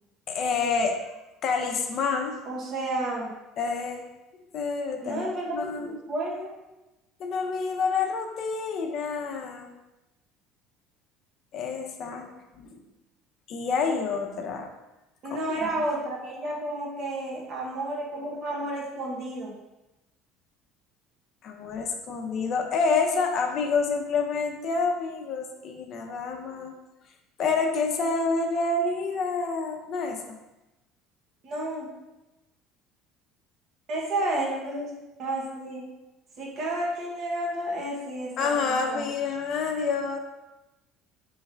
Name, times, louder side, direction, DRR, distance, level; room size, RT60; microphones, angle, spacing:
voice 1, 0.3-1.0 1.4-2.4 3.6-4.1 4.3-5.2 5.5-5.9 7.2-9.7 11.5-12.8 13.5-14.7 15.6-15.7 21.4-26.7 27.4-30.4 38.4-40.2, left 4 dB, 50° left, 3 dB, 0.6 m, -28 dB
voice 2, 2.4-3.3 5.0-6.5 15.2-19.5 31.4-31.9 33.9-34.9 35.2-35.9 36.4-39.1, right 1 dB, 50° right, -2 dB, 1.2 m, -31 dB
3.6 x 3.2 x 4.4 m, 1.0 s
cardioid pair, 115°, 0 cm